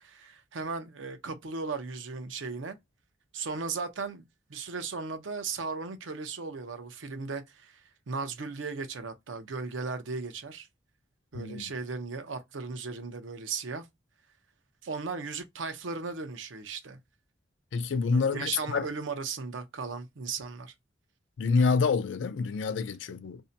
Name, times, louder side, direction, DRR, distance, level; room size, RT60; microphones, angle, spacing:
voice 1, 0.0-2.8 3.3-7.8 8.1-10.7 11.3-13.9 14.8-17.0 18.1-20.7, right 4 dB, 80° right, 0.6 m, -36 dB
voice 2, 11.3-11.7 17.7-18.9 21.4-23.4, left 4 dB, 70° left, 0.4 m, -27 dB
2.6 x 2.1 x 2.6 m
head